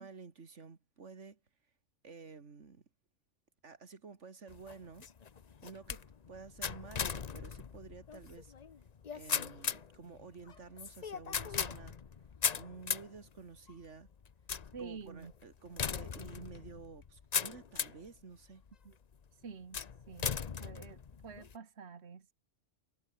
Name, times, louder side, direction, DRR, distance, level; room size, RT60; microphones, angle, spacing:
voice 1, 0.0-1.4 2.0-2.8 3.6-5.1 5.6-8.5 9.1-12.0 12.5-14.1 14.8-18.6, right 4 dB, 85° right, 2.3 m, -51 dB
sound 1, 4.5-18.1 18.7-19.1 19.7-21.6, left 6 dB, 40° left, 0.8 m, -39 dB
voice 2, 14.7-15.3 18.9-19.0 19.4-19.8 20.1-20.4 20.6-22.3, right 5 dB, 65° right, 1.8 m, -48 dB
omnidirectional pair, 1.2 m